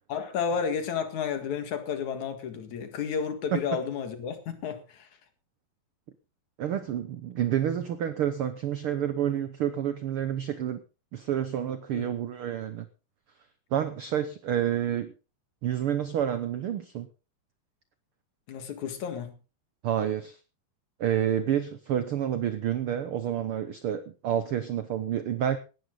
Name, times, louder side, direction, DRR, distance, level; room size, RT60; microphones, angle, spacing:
voice 1, 0.1-5.1 11.9-12.1 18.5-19.3, left 7 dB, 65° left, 3.1 m, -32 dB
voice 2, 6.6-10.8 11.1-12.9 13.7-15.1 15.6-17.1 19.8-20.4 21.0-25.6, right 10 dB, 80° right, 1.2 m, -29 dB
17.5 x 13.0 x 3.9 m
omnidirectional pair, 3.7 m